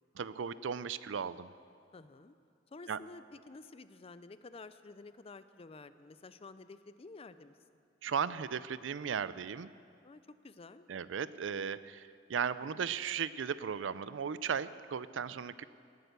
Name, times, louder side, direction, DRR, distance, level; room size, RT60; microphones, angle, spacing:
voice 1, 0.2-1.5 2.9-3.0 8.0-9.7 10.9-15.6, right 7 dB, 85° right, 16 dB, 0.5 m, -36 dB
voice 2, 1.9-2.3 2.7-7.5 10.0-10.9, left 3 dB, 30° left, 13 dB, 0.5 m, -51 dB
18.5 x 9.0 x 6.7 m, 2.3 s
head